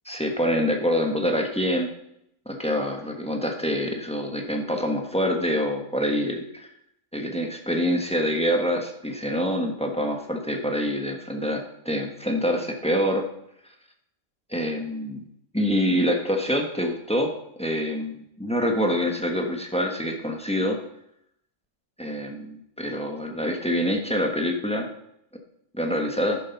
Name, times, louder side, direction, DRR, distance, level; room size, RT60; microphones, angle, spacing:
voice 1, 0.0-1.9 2.4-6.7 7.1-13.2 14.5-15.2 15.5-17.3 17.6-20.8 22.0-24.9 25.7-26.4, equal, 5° left, 2 dB, 1.2 m, -26 dB
10.0 x 7.2 x 5.8 m, 0.77 s
omnidirectional pair, 1.5 m